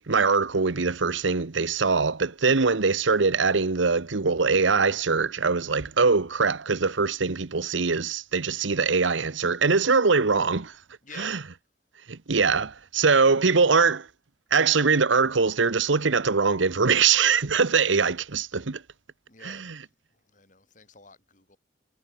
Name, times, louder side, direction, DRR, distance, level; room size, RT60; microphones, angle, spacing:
voice 1, 0.0-10.7 11.2-11.4 12.1-14.1 14.5-18.8 19.4-19.8, right 4 dB, 80° right, 1.0 m, -22 dB
voice 2, 11.0-11.5 19.3-21.6, left 5 dB, 40° left, 5.6 m, -50 dB
head